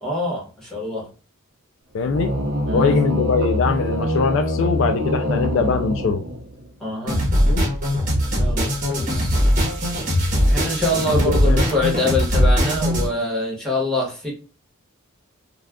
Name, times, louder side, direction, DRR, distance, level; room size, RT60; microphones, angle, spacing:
voice 1, 0.0-1.1 2.7-2.9 6.8-7.2 8.2-9.3 10.5-14.3, left 2 dB, 5° left, 1.0 m, -25 dB
voice 2, 1.9-2.3 2.7-6.2 7.4-7.7 11.1-11.7, left 5 dB, 65° left, 0.3 m, -22 dB
sound 1, 2.0-6.7, left 1 dB, 60° right, 0.6 m, -24 dB
sound 2, 7.1-13.1, equal, 40° right, 0.9 m, -20 dB
2.3 x 2.3 x 3.4 m
head